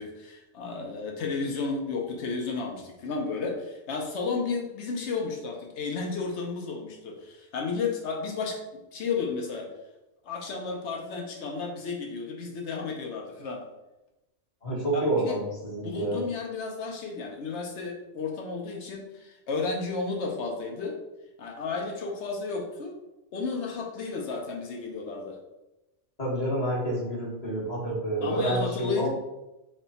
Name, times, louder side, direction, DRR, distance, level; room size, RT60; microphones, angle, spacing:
voice 1, 0.0-9.7 10.2-13.6 14.9-15.4 15.8-21.0 21.4-23.0 23.3-25.4 28.2-29.1, left 4 dB, 75° left, 1 dB, 1.0 m, -33 dB
voice 2, 14.6-16.2 26.2-29.1, right 1 dB, 35° left, -6 dB, 1.2 m, -28 dB
3.2 x 2.2 x 3.9 m, 0.97 s
omnidirectional pair, 1.2 m